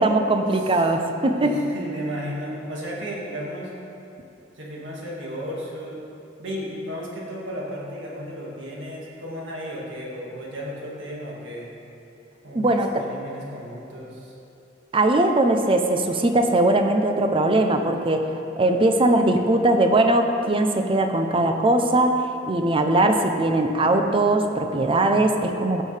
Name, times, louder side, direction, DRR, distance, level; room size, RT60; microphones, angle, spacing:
voice 1, 0.0-1.5 12.5-13.0 14.9-25.8, right 2 dB, 30° right, 5 dB, 0.6 m, -20 dB
voice 2, 1.3-3.7 4.5-6.0 6.4-11.7 12.4-14.3, equal, 75° right, -4 dB, 1.9 m, -34 dB
14.5 x 6.4 x 3.3 m, 2.8 s
head